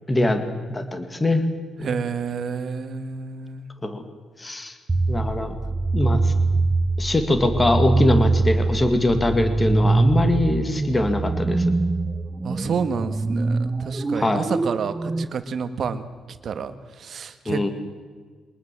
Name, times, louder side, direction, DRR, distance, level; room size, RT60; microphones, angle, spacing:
voice 1, 0.1-0.4 0.7-1.5 1.8-1.9 3.8-4.0 4.4-4.8 5.1-5.5 5.9-6.3 7.0-11.6 14.2-14.4 17.5-17.7, left 1 dB, 15° left, 8 dB, 1.9 m, -22 dB
voice 2, 1.8-3.7 12.4-16.0 16.4-17.7, right 6 dB, 45° right, 10 dB, 1.6 m, -29 dB
sound 1, 4.9-15.3, right 3 dB, 15° right, 0.6 m, -23 dB
23.5 x 19.5 x 7.6 m, 1.5 s
cardioid pair, 165°, 0 cm